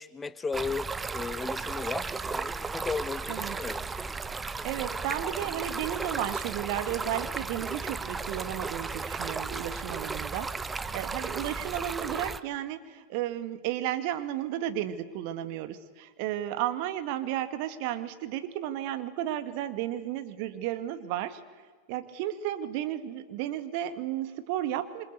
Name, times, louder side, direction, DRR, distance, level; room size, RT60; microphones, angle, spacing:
voice 1, 0.0-3.8, left 4 dB, 15° left, 14 dB, 1.2 m, -35 dB
Stream, 0.5-12.4, right 4 dB, 15° right, 0.9 m, -35 dB
voice 2, 3.3-3.6 4.6-21.4 21.9-25.0, right 12 dB, 45° right, 11 dB, 2.0 m, -33 dB
27.0 x 26.0 x 8.2 m, 1.4 s
figure-of-eight pair, 90°, 0 cm